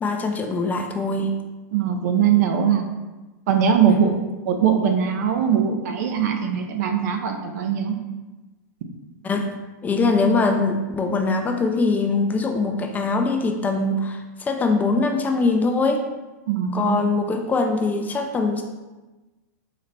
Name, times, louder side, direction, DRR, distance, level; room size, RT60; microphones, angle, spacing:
voice 1, 0.0-1.3 3.9-4.2 9.2-9.5 9.8-16.0 16.7-18.6, left 3 dB, 15° left, 4 dB, 0.3 m, -22 dB
voice 2, 1.7-2.8 3.5-4.1 4.5-8.0 16.5-17.0, right 8 dB, 65° right, 5 dB, 0.6 m, -21 dB
4.1 x 2.1 x 3.9 m, 1.1 s
hypercardioid pair, 125°, 9 cm